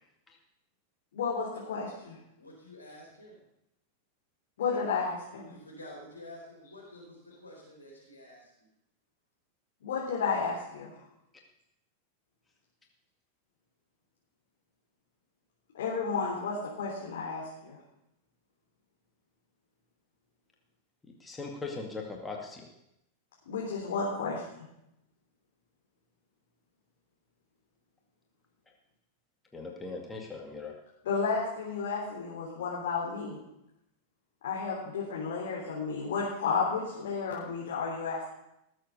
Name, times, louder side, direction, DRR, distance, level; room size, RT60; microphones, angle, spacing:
voice 1, 1.1-2.2 4.6-5.5 9.8-10.9 15.7-17.8 23.5-24.7 31.0-33.4 34.4-38.3, left 5 dB, 60° left, -4 dB, 3.7 m, -32 dB
voice 2, 2.4-3.4 5.5-8.5, left 1 dB, 80° left, -2 dB, 4.4 m, -49 dB
voice 3, 21.2-22.7 29.5-30.7, left 3 dB, 10° left, 0 dB, 2.1 m, -39 dB
19.0 x 7.7 x 6.7 m, 0.84 s
figure-of-eight pair, 90°, 0 cm